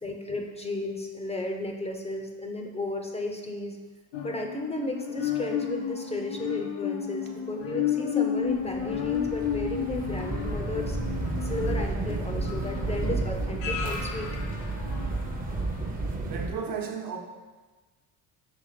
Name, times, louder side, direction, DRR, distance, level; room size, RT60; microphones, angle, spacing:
voice 1, 0.0-3.8 4.2-11.0 11.4-14.3, left 2 dB, 15° left, 2 dB, 0.6 m, -34 dB
sound 1, 4.1-15.6 16.0-16.1, left 8 dB, 85° left, 0.8 m, -32 dB
sound 2, 8.5-16.5, right 3 dB, 20° right, 0.7 m, -32 dB
voice 2, 14.7-15.1 15.4-15.6 16.2-17.2, right 6 dB, 55° right, 2 dB, 1.0 m, -36 dB
5.8 x 3.4 x 4.9 m, 1.3 s
cardioid pair, 105°, 40 cm